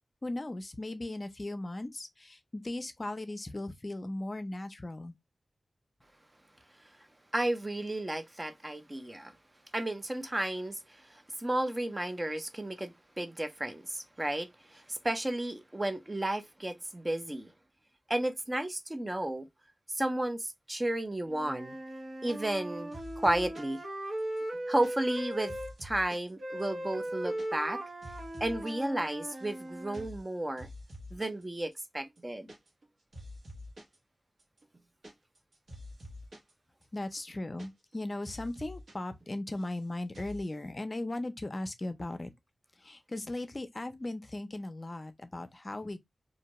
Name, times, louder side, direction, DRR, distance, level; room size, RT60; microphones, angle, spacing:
voice 1, 0.2-5.1 36.9-42.3 42.8-46.0, left 2 dB, 35° left, 0.5 m, -37 dB
voice 2, 7.3-9.3 9.7-10.8 11.1-17.5 18.1-19.5 19.9-21.8 22.2-23.8 24.7-27.8 28.4-30.7 31.1-32.5, right 1 dB, 25° right, 0.6 m, -33 dB
Wind instrument woodwind instrument, 21.3-25.7 26.4-30.1, right 1 dB, 65° right, 0.8 m, -38 dB
sound 1, 22.3-22.7 22.9-23.8 24.2-26.3 26.6-26.7 27.0-27.5 27.7-28.7 29.0-29.6 29.9-30.3 30.6-31.4 31.7-31.8 32.1-32.9 33.1-34.0 34.4-36.5 36.8-36.9 37.2-38.0 38.2-38.9 39.2-39.8 40.1-40.5, left 1 dB, 80° right, 1.2 m, -48 dB
2.6 x 2.2 x 2.9 m
wide cardioid pair, 75°, 0 cm